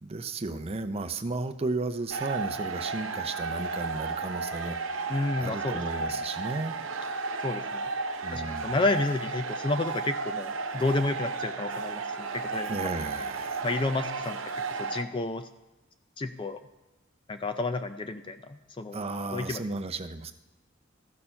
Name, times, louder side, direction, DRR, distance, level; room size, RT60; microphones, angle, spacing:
voice 1, 0.0-6.8 8.2-8.7 12.6-13.6 18.9-20.3, right 3 dB, 30° right, 10 dB, 0.6 m, -34 dB
sound 1, 2.1-15.0, right 4 dB, 80° right, 0.7 m, -33 dB
Wind instrument woodwind instrument, 2.8-8.0, equal, 5° left, 1.0 m, -50 dB
voice 2, 5.1-6.0 7.4-7.9 8.3-12.7 13.6-14.4 14.7-15.5 16.2-16.6 17.3-19.0 19.3-19.6, left 2 dB, 25° left, 8 dB, 0.4 m, -31 dB
14.0 x 6.7 x 5.6 m, 1.1 s
head